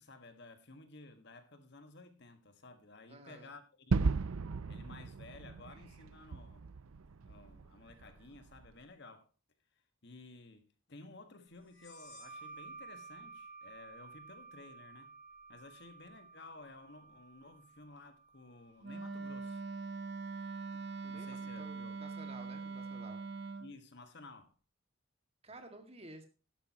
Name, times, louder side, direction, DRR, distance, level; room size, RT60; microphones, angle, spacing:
voice 1, 0.0-4.2 4.7-6.7 7.2-9.3 10.0-15.1 15.5-19.6 21.1-22.0 23.6-24.6, left 3 dB, 55° left, 1.6 m, -55 dB
voice 2, 3.1-3.5 20.7-23.2 25.4-26.2, right 2 dB, 30° right, 1.9 m, -53 dB
Gunshot gunfire / Fireworks / Boom, 3.9-8.7, right 4 dB, 80° right, 0.6 m, -36 dB
sound 1, 11.7-19.0, right 4 dB, 80° left, 5.1 m, -53 dB
Wind instrument woodwind instrument, 18.8-23.7, right 4 dB, 50° right, 1.0 m, -42 dB
12.0 x 12.0 x 2.9 m
head